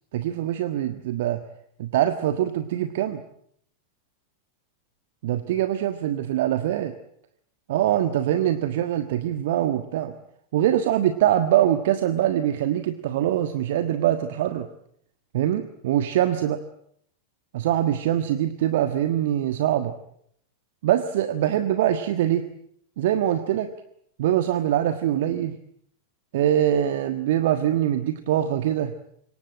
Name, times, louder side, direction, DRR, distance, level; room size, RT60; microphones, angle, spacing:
voice 1, 0.1-1.4 1.8-3.2 5.2-6.9 7.7-10.1 10.5-14.7 15.3-16.6 17.5-19.9 20.8-22.5 23.0-23.7 24.2-25.6 26.3-29.0, right 11 dB, 55° right, 10 dB, 1.4 m, -23 dB
26.0 x 23.5 x 8.8 m, 0.69 s
figure-of-eight pair, 90°, 0 cm